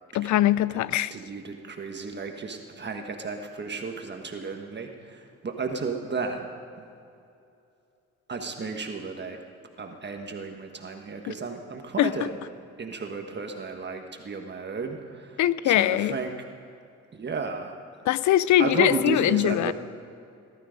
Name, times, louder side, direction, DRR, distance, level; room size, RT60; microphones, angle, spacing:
voice 1, 0.1-1.2 12.0-12.3 15.4-16.2 18.1-19.7, left 13 dB, 70° left, 18 dB, 0.5 m, -22 dB
voice 2, 1.1-6.5 6.8-6.9 8.3-9.4 9.8-12.3 12.8-15.4 15.6-16.3 17.1-17.7 18.6-19.7, right 4 dB, 35° right, 3 dB, 1.4 m, -33 dB
18.5 x 12.5 x 5.2 m, 2.6 s
cardioid pair, 90°, 30 cm